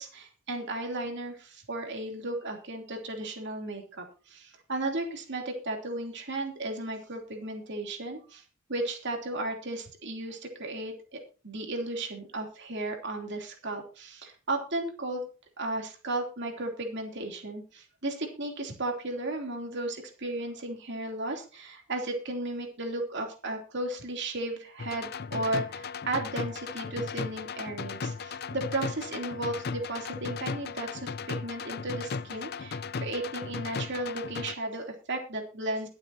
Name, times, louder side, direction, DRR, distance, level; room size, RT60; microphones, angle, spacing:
voice 1, 0.0-8.4 8.7-15.3 15.6-35.9, right 2 dB, 55° right, 2 dB, 3.0 m, -35 dB
sound 1, 24.8-34.6, left 5 dB, 50° left, 0.5 m, -36 dB
22.5 x 7.7 x 2.8 m, 0.36 s
head